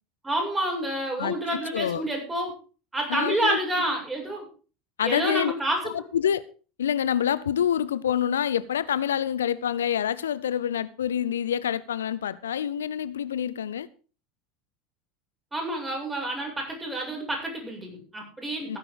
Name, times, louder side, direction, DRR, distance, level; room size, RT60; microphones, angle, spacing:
voice 1, 0.2-2.5 2.9-4.5 5.0-6.0 15.5-18.8, right 1 dB, 15° right, 0 dB, 7.7 m, -29 dB
voice 2, 1.2-2.1 3.1-3.6 5.0-5.5 5.8-6.4 6.8-13.9 18.6-18.8, left 9 dB, 75° left, 18 dB, 0.6 m, -27 dB
16.0 x 9.9 x 4.9 m, 0.37 s
figure-of-eight pair, 75°, 0 cm